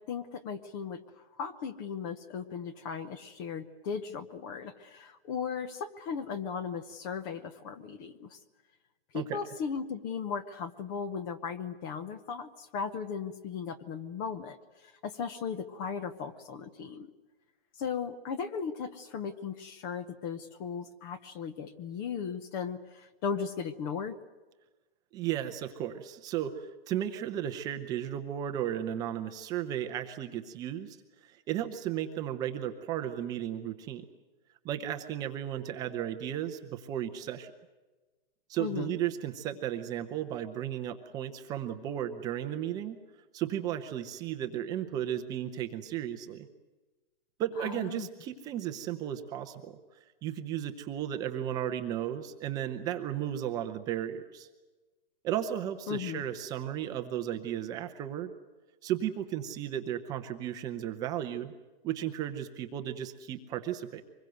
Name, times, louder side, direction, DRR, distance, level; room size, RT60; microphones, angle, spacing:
voice 1, 0.1-1.0 1.4-8.4 9.1-14.6 14.8-17.1 17.8-24.2 38.6-38.9 47.6-48.1 55.9-56.2, left 6 dB, 20° left, 13 dB, 0.8 m, -37 dB
voice 2, 25.1-34.1 34.6-37.5 38.5-43.0 43.3-46.5 47.4-49.8 50.2-54.5 55.2-58.3 58.8-61.5 61.8-64.0, right 11 dB, 15° right, 6 dB, 0.7 m, -34 dB
25.0 x 21.5 x 8.0 m, 1.2 s
hypercardioid pair, 160°, 30 cm